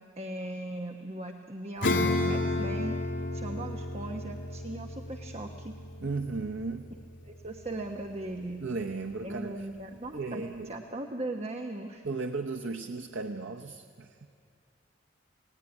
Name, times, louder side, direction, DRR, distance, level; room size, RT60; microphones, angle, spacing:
voice 1, 0.2-2.0 2.3-3.0 3.3-5.7 7.2-8.6 9.2-10.4 10.7-12.0, right 1 dB, 35° right, 4 dB, 1.0 m, -38 dB
Acoustic guitar / Strum, 1.8-7.8, left 2 dB, 70° left, 2.0 m, -32 dB
voice 2, 6.0-6.9 8.6-9.7 10.1-10.7 12.0-14.3, right 3 dB, 90° right, 5 dB, 0.9 m, -35 dB
28.5 x 18.0 x 9.9 m, 2.5 s
head